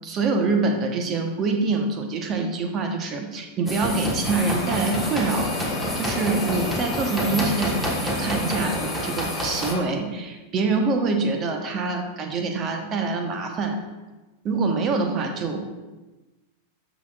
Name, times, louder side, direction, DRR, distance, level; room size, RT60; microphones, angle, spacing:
voice 1, 0.0-5.5 5.9-13.8 14.4-15.7, right 4 dB, 30° right, 5 dB, 1.1 m, -25 dB
sound 1, 3.7-9.7, equal, 10° right, 1.5 m, -28 dB
sound 2, 4.2-9.8, left 4 dB, 40° left, 1.6 m, -33 dB
13.0 x 6.1 x 2.5 m, 1.1 s
figure-of-eight pair, 90°, 0 cm